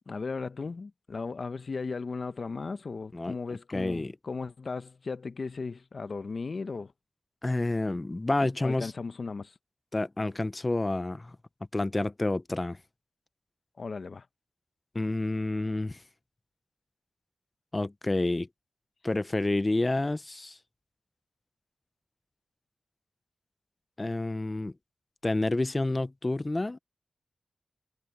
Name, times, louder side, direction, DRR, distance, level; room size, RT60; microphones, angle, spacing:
voice 1, 0.1-6.9 8.6-9.5 13.8-14.3, left 4 dB, 55° left, 1.0 m, -36 dB
voice 2, 3.7-4.1 7.4-8.9 9.9-11.4 11.7-12.8 14.9-16.0 17.7-18.5 19.0-20.6 24.0-24.7 25.2-26.8, left 2 dB, 25° left, 0.6 m, -29 dB
wide cardioid pair, 80°, 0 cm